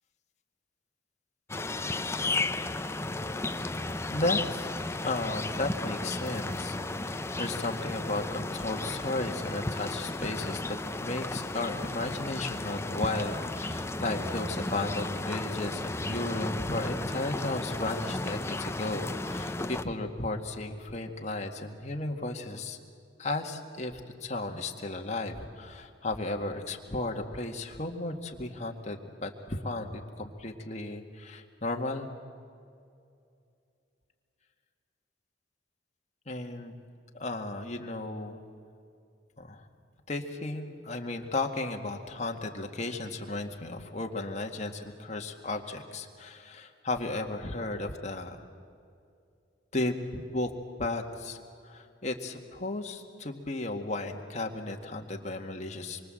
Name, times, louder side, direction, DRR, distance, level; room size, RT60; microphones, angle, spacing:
sound 1, 1.5-19.8, left 2 dB, 15° left, 0.6 m, -34 dB
voice 1, 4.1-4.7 5.0-22.8 23.2-32.1 36.3-36.7 37.2-38.4 39.4-39.7 40.1-48.4 49.7-50.5 50.8-56.1, left 2 dB, 40° left, 3 dB, 1.9 m, -34 dB
26.5 x 24.0 x 7.8 m, 2.4 s
head